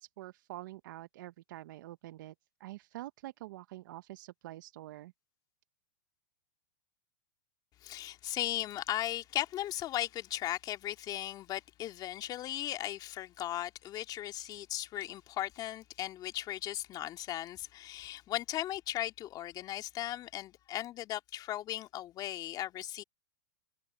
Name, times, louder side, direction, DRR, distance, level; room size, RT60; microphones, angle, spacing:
voice 1, 0.0-2.3 2.6-5.1, right 16 dB, 65° right, 1.0 m, -46 dB
voice 2, 7.8-23.0, left 13 dB, 35° left, 2.1 m, -37 dB
hypercardioid pair, 115°, 11 cm